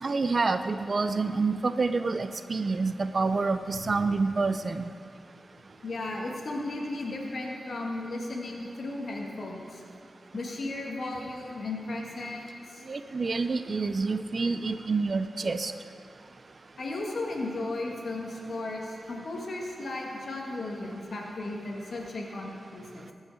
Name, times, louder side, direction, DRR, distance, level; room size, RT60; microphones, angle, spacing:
voice 1, 0.0-4.8 12.9-15.7, right 4 dB, 55° right, 10 dB, 0.4 m, -28 dB
voice 2, 5.8-9.8 10.3-12.8 16.8-23.1, left 2 dB, 70° left, -1 dB, 1.4 m, -35 dB
15.5 x 5.5 x 4.6 m, 2.3 s
cardioid pair, 50°, 0 cm